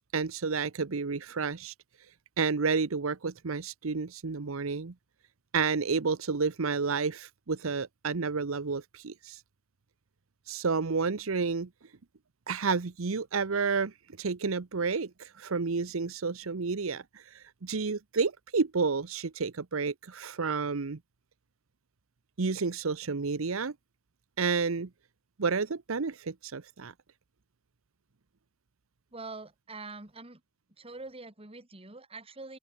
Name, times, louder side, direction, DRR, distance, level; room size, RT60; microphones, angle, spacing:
voice 1, 0.1-1.7 2.4-4.9 5.5-9.4 10.5-11.7 12.5-21.0 22.4-23.7 24.4-24.9 25.4-26.9, right 4 dB, 90° right, 0.8 m, -30 dB
voice 2, 29.1-30.4 30.8-32.6, right 3 dB, 30° right, 2.3 m, -44 dB
open air
head